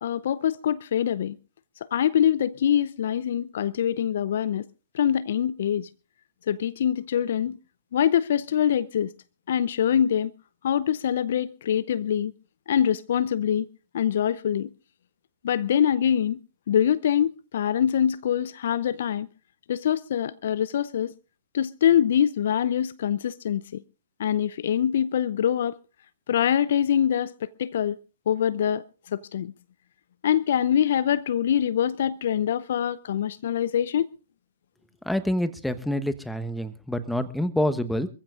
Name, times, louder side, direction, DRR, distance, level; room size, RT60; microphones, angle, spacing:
voice 1, 0.0-1.4 1.9-4.6 4.9-5.9 6.5-7.6 7.9-9.1 9.5-10.3 10.6-12.3 12.7-13.7 13.9-14.7 15.4-16.4 16.7-19.3 19.7-21.1 21.5-23.6 24.2-25.8 26.3-28.0 28.3-28.8 29.1-29.5 30.2-34.1, left 9 dB, 60° left, 0.6 m, -24 dB
voice 2, 35.0-38.1, left 1 dB, 5° left, 1.1 m, -27 dB
27.0 x 15.0 x 2.5 m
figure-of-eight pair, 120°, 0 cm